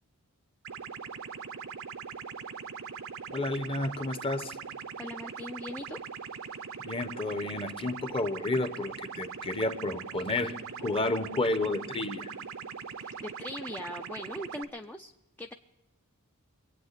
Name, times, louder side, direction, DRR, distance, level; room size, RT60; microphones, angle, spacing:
sound 1, 0.6-14.6, right 6 dB, 65° right, 0.7 m, -41 dB
voice 1, 3.3-4.6 6.8-12.3, left 2 dB, 25° left, 10 dB, 0.9 m, -31 dB
voice 2, 5.0-6.0 13.0-15.1 15.4-15.5, left 1 dB, 10° left, 4 dB, 0.4 m, -40 dB
22.5 x 8.9 x 6.7 m, 1.0 s
head